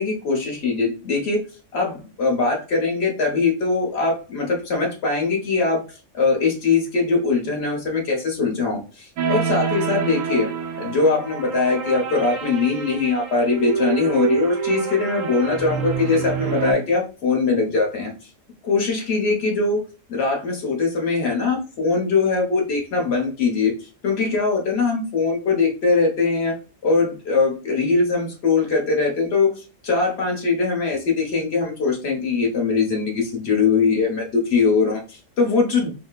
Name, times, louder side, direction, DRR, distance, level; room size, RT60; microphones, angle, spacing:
voice 1, 0.0-1.4 1.7-5.8 6.1-10.5 10.8-18.1 18.6-19.8 20.1-26.5 26.8-29.5 29.8-35.9, left 4 dB, 55° left, 0 dB, 1.3 m, -21 dB
sound 1, 9.2-16.7, right 6 dB, 85° right, 1.1 m, -27 dB
4.3 x 2.1 x 2.3 m, 0.34 s
omnidirectional pair, 1.3 m